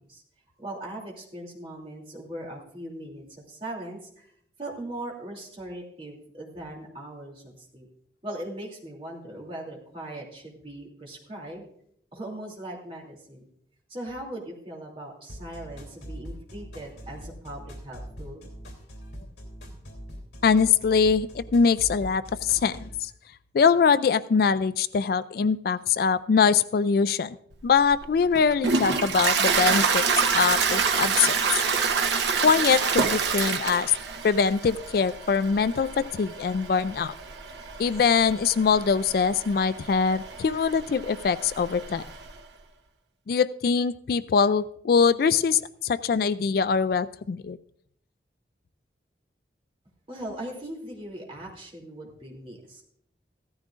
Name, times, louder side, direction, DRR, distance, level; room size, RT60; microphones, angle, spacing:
voice 1, 0.6-4.3 4.6-7.9 8.2-11.7 12.1-13.4 13.9-18.5 19.7-19.8 50.1-52.8, right 1 dB, 30° right, -2 dB, 2.7 m, -39 dB
sound 1, 15.3-23.0, equal, 75° left, 3.0 m, -42 dB
voice 2, 20.4-23.1 23.5-27.4 27.6-31.4 32.4-33.9 34.2-37.1 37.8-42.0 43.3-47.6, left 6 dB, 55° left, 15 dB, 0.3 m, -23 dB
Toilet flush, 27.6-42.3, right 5 dB, 80° right, 1.0 m, -28 dB
15.5 x 13.5 x 2.5 m, 0.67 s
head